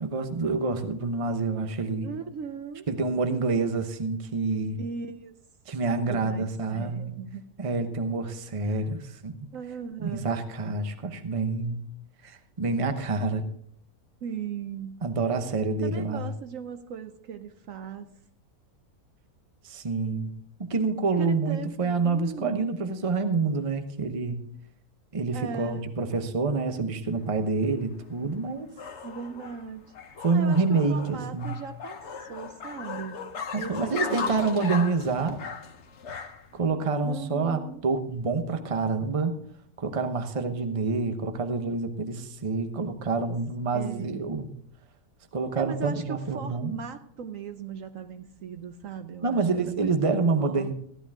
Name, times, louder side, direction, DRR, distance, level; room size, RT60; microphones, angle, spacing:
voice 1, 0.0-2.1 2.9-4.8 5.7-7.1 7.6-9.4 10.0-11.9 12.2-13.4 15.0-16.3 19.6-20.3 20.6-24.4 25.1-28.7 30.2-31.6 33.5-35.4 36.5-39.4 39.8-44.5 45.3-46.8 49.2-50.7, right 4 dB, 25° right, 8 dB, 0.9 m, -27 dB
voice 2, 2.0-2.9 4.8-5.3 6.1-7.5 8.6-8.9 9.5-10.4 14.2-15.1 15.8-18.2 21.2-22.7 25.3-25.9 29.0-29.8 30.1-30.6 30.9-34.8 37.0-37.8 43.6-44.3 45.6-50.7, right 7 dB, 65° right, 9 dB, 1.1 m, -38 dB
sound 1, 27.1-36.6, left 6 dB, 55° left, 1.1 m, -37 dB
15.0 x 11.5 x 3.6 m, 0.65 s
omnidirectional pair, 1.6 m